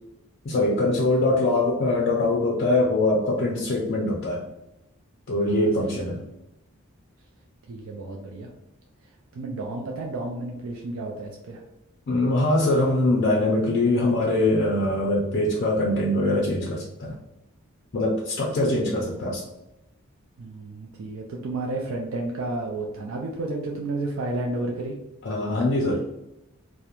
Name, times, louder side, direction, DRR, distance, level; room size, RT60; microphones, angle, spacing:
voice 1, 0.4-4.4 5.3-6.2 12.1-17.2 17.9-19.4 25.2-26.1, left 2 dB, 45° left, -3 dB, 0.4 m, -23 dB
voice 2, 5.5-6.1 7.7-8.5 9.3-11.6 18.9-19.3 20.4-25.0, right 2 dB, 70° right, 0 dB, 0.4 m, -32 dB
2.4 x 2.1 x 2.9 m, 0.90 s
head